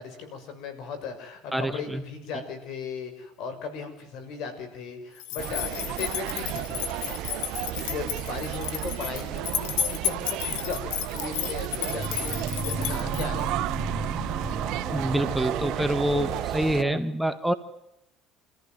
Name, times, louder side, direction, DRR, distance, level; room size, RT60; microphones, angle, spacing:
voice 1, 0.0-13.7, left 5 dB, 70° left, 8 dB, 6.6 m, -37 dB
voice 2, 1.5-2.0 14.9-17.5, right 1 dB, ahead, 8 dB, 1.4 m, -26 dB
sound 1, 5.2-13.5, left 12 dB, 85° left, 1.6 m, -33 dB
sound 2, 5.4-16.8, right 17 dB, 70° right, 0.8 m, -33 dB
sound 3, 11.9-17.0, right 4 dB, 35° right, 3.3 m, -32 dB
27.0 x 15.0 x 9.5 m, 0.85 s
cardioid pair, 110°, 0 cm